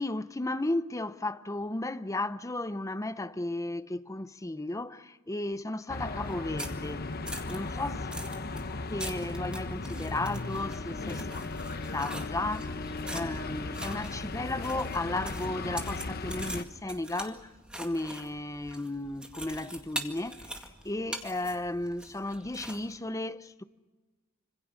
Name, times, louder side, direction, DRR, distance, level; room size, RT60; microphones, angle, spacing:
voice 1, 0.0-7.1 7.5-8.1 8.9-11.3 11.9-23.6, left 2 dB, 15° left, 0.7 m, -34 dB
sound 1, 5.9-16.6, left 3 dB, 50° left, 1.0 m, -36 dB
sound 2, 6.2-22.9, right 1 dB, 5° right, 2.0 m, -44 dB
26.5 x 26.0 x 6.2 m
head